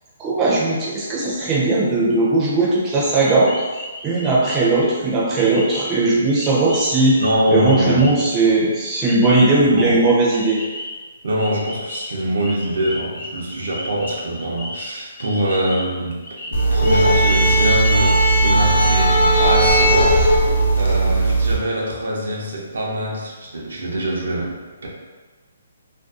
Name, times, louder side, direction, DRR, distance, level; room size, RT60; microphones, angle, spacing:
voice 1, 0.2-3.5 4.0-7.2 7.5-10.6, right 2 dB, 20° right, -7 dB, 0.6 m, -18 dB
sound 1, 3.1-4.9 5.4-6.1 6.3-8.4 9.0-9.5 10.4-11.0 11.3-18.5 18.8-19.0, left 1 dB, 40° left, 1.0 m, -34 dB
voice 2, 7.2-8.1 9.6-10.0 11.2-16.2 16.5-24.9, right 1 dB, 75° right, -3 dB, 0.6 m, -24 dB
sound 2, 16.5-21.6, right 1 dB, 60° left, 0.5 m, -16 dB
2.5 x 2.3 x 2.4 m, 1.3 s
hypercardioid pair, 155°, 0 cm